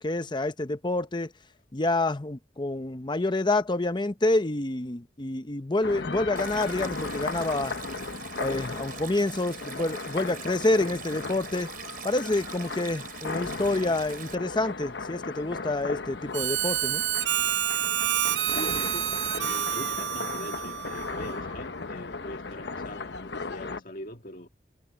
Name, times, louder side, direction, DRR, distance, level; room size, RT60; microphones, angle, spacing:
voice 1, 0.0-1.3 1.7-7.8 8.4-11.7 12.0-17.0, left 2 dB, 25° left, 0.8 m, -28 dB
sound 1, 5.8-23.8, left 3 dB, 75° left, 1.0 m, -36 dB
Stream, 6.4-14.4, right 8 dB, 55° right, 4.7 m, -43 dB
Harmonica, 16.3-21.5, right 12 dB, 80° right, 0.7 m, -28 dB
voice 2, 18.4-24.5, left 1 dB, 50° left, 1.8 m, -42 dB
head